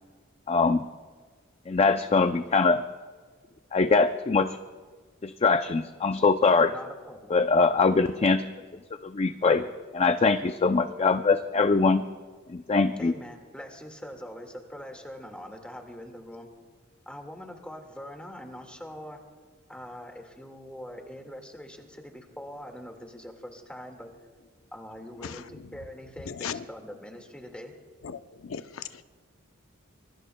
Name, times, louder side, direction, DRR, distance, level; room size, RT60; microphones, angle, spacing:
voice 1, 0.5-0.9 1.7-2.8 3.7-4.6 5.2-6.7 7.3-8.4 9.0-9.6 9.9-12.0 12.5-13.1, left 4 dB, 30° left, 9 dB, 0.4 m, -22 dB
voice 2, 6.7-7.3 9.4-9.7 13.0-16.5 17.1-19.2 19.7-24.1 24.7-25.5 25.7-27.7, equal, 5° left, 2 dB, 1.8 m, -43 dB
voice 3, 26.3-26.6 28.0-29.0, left 7 dB, 75° left, 10 dB, 0.6 m, -37 dB
24.5 x 23.0 x 2.2 m, 1.5 s
head